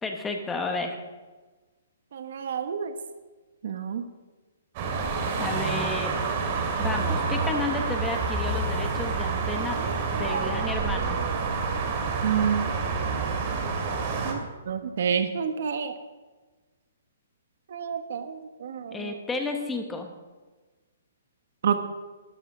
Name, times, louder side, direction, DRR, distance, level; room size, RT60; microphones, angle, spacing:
voice 1, 0.0-1.0 5.4-6.1 6.8-9.8 10.1-11.2 18.9-20.1, left 3 dB, 5° left, 4 dB, 1.2 m, -32 dB
voice 2, 2.1-3.0 3.6-4.0 9.6-11.7 12.2-12.7 14.2-16.0 17.7-19.1 21.6-21.8, right 7 dB, 55° right, 8 dB, 1.2 m, -30 dB
sound 1, 4.8-14.3, right 4 dB, 30° right, 2.4 m, -28 dB
13.0 x 11.5 x 6.1 m, 1.2 s
hypercardioid pair, 170°, 0 cm